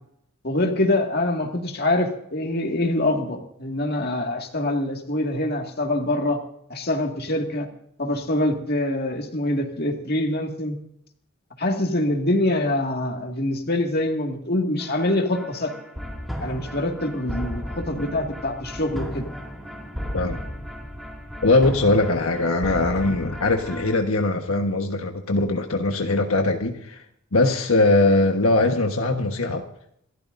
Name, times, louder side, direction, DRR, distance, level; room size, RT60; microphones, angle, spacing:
voice 1, 0.4-6.4 6.7-7.7 8.0-10.8 11.6-15.7 16.4-19.3, left 1 dB, 45° left, 3 dB, 2.0 m, -24 dB
sound 1, 14.8-24.0, equal, ahead, 2.3 m, -35 dB
voice 2, 21.4-27.0 27.3-29.6, left 2 dB, 75° left, 4 dB, 1.4 m, -21 dB
27.0 x 13.5 x 2.6 m, 0.71 s
head